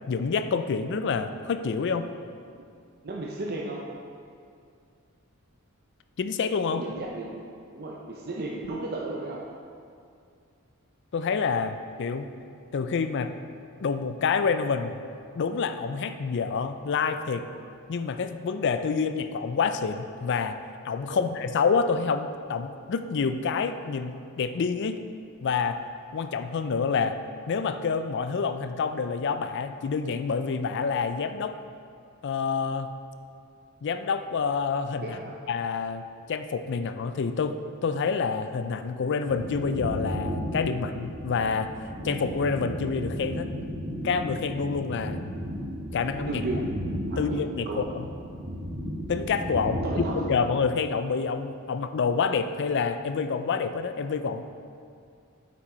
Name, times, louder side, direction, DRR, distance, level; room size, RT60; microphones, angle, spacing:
voice 1, 0.1-2.1 6.2-6.8 11.1-12.3 12.7-13.4 13.8-15.0 15.3-17.5 17.9-20.6 20.8-25.0 25.4-25.8 26.1-27.2 27.5-31.6 32.2-32.9 33.8-35.2 35.5-36.0 36.3-41.7 42.0-43.5 44.0-45.2 45.9-46.4 47.2-48.1 49.1-49.8 50.2-54.4, left 5 dB, 55° left, 10 dB, 0.4 m, -27 dB
voice 2, 3.0-3.9 6.7-9.5 21.1-21.3 35.0-35.3 46.3-46.7 47.1-47.8 49.8-50.5, right 2 dB, 45° right, -2 dB, 0.6 m, -35 dB
sound 1, 39.3-50.4, equal, 30° right, 1.4 m, -34 dB
8.4 x 6.0 x 4.3 m, 2.3 s
head